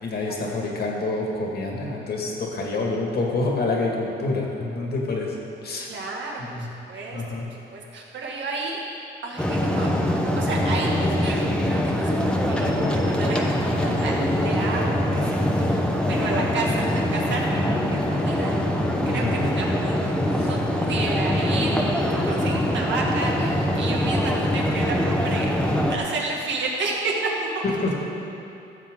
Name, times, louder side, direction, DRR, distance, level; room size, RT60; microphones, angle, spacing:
voice 1, 0.0-5.4 5.6-5.9 6.5-6.7 7.1-7.5 16.3-16.5 19.1-19.5 20.4-20.5 24.2-24.6 27.6-27.9, left 2 dB, 50° left, -1 dB, 2.1 m, -27 dB
voice 2, 5.9-7.2 7.5-8.8 9.2-9.9 10.4-16.8 17.1-18.5 19.0-21.9 22.2-25.5 25.9-27.9, right 3 dB, 65° right, -2 dB, 2.1 m, -31 dB
sound 1, 9.4-26.0, left 1 dB, 5° left, 1.0 m, -23 dB
15.5 x 7.2 x 3.9 m, 2.7 s
cardioid pair, 90°, 20 cm